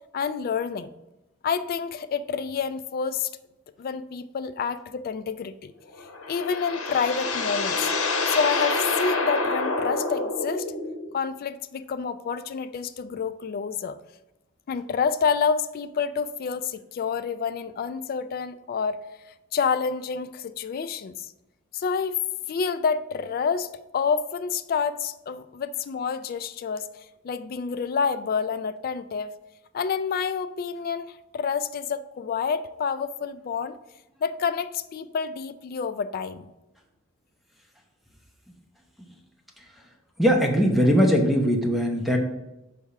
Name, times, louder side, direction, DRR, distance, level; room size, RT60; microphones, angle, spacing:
voice 1, 0.1-0.9 1.4-3.3 3.8-5.7 6.3-7.9 8.3-10.7 11.1-14.0 14.7-19.0 19.5-21.3 21.7-26.9 27.2-29.4 29.7-33.8 34.2-36.5, left 6 dB, 45° left, 12 dB, 0.3 m, -28 dB
sound 1, 5.9-11.1, left 3 dB, 80° left, 0.8 m, -27 dB
voice 2, 40.2-42.2, equal, ahead, 1 dB, 0.8 m, -20 dB
5.4 x 3.5 x 5.8 m, 0.98 s
head